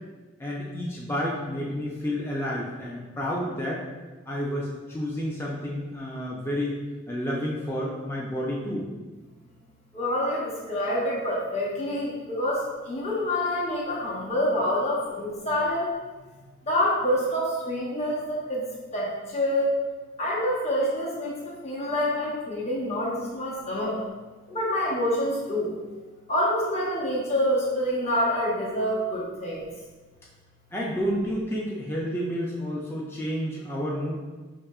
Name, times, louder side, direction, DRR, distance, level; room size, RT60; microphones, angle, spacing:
voice 1, 0.4-3.8 4.3-6.7 7.1-8.9 30.7-34.2, equal, 10° left, -4 dB, 0.4 m, -30 dB
voice 2, 9.9-15.9 16.7-18.6 18.9-19.7 20.2-24.0 24.5-25.7 26.3-29.7, left 1 dB, 35° left, -6 dB, 0.9 m, -27 dB
4.9 x 2.7 x 2.3 m, 1.3 s
head